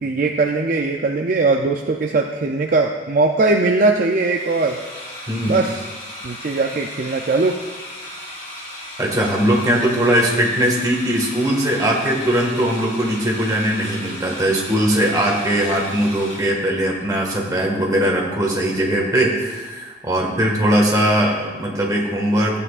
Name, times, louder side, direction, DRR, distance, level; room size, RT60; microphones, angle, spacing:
voice 1, 0.0-4.8 5.5-5.8 6.2-7.6, right 3 dB, 45° right, 3 dB, 0.4 m, -20 dB
sound 1, 4.0-16.4, left 1 dB, 40° left, 2.9 m, -36 dB
voice 2, 5.3-5.6 9.0-22.6, right 1 dB, 20° right, -2 dB, 1.7 m, -20 dB
14.5 x 8.6 x 2.5 m, 1.3 s
head